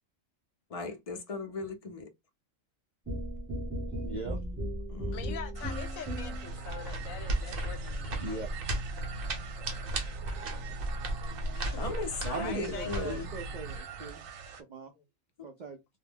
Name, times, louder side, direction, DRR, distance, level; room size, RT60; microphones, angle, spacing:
voice 1, 0.7-2.1 4.9-5.3 11.8-13.3, left 3 dB, 45° left, 0.5 m, -37 dB
sound 1, 3.1-6.6, equal, 15° right, 0.9 m, -36 dB
voice 2, 4.0-4.4 8.2-8.5 9.7-9.9 10.4-10.7 12.3-14.2 14.7-14.9 15.4-15.8, right 4 dB, 70° right, 0.4 m, -40 dB
voice 3, 5.1-8.7 9.7-9.8 11.5-11.9 12.3-13.3 14.9-15.0, left 8 dB, 85° left, 1.0 m, -44 dB
sound 2, 5.6-14.6, right 5 dB, 85° right, 1.0 m, -45 dB
sound 3, 6.5-13.8, right 1 dB, 55° right, 0.8 m, -35 dB
2.3 x 2.1 x 3.4 m
omnidirectional pair, 1.4 m